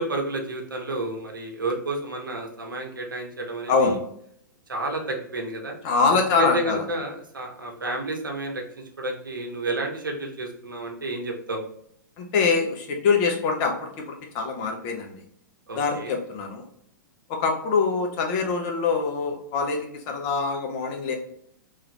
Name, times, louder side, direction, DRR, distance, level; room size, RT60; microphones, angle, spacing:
voice 1, 0.0-4.0 4.7-5.8 6.4-11.6 15.7-16.1, right 2 dB, 85° right, 2 dB, 0.8 m, -31 dB
voice 2, 3.7-4.0 5.8-6.8 12.2-15.2 15.7-16.6 17.3-21.2, left 4 dB, 40° left, 3 dB, 0.8 m, -24 dB
3.1 x 2.5 x 3.0 m, 0.68 s
figure-of-eight pair, 110°, 11 cm